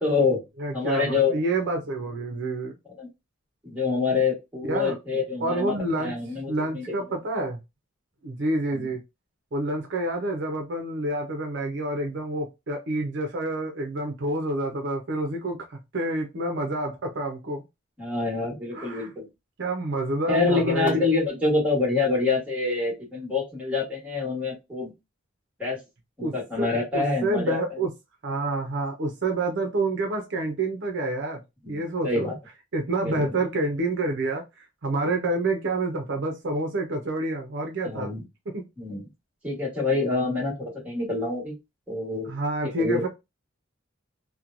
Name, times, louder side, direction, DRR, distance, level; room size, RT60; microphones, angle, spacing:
voice 1, 0.0-0.4 0.7-1.4 3.0-3.1 3.6-6.8 8.7-8.9 18.0-19.3 20.3-24.9 25.6-25.8 26.2-27.6 31.6-32.3 33.0-33.3 37.8-38.2 38.8-39.0 39.4-41.5 41.9-42.3 42.8-43.1, left 3 dB, 5° right, 1.3 m, -26 dB
voice 2, 0.6-2.8 4.7-5.0 5.4-6.1 6.5-7.6 8.2-9.0 9.5-17.6 18.7-19.1 19.6-21.1 26.2-27.9 28.2-31.4 31.7-32.3 32.7-38.1 38.5-38.6 42.3-43.1, right 2 dB, 60° right, 0.6 m, -28 dB
3.0 x 2.2 x 2.5 m
head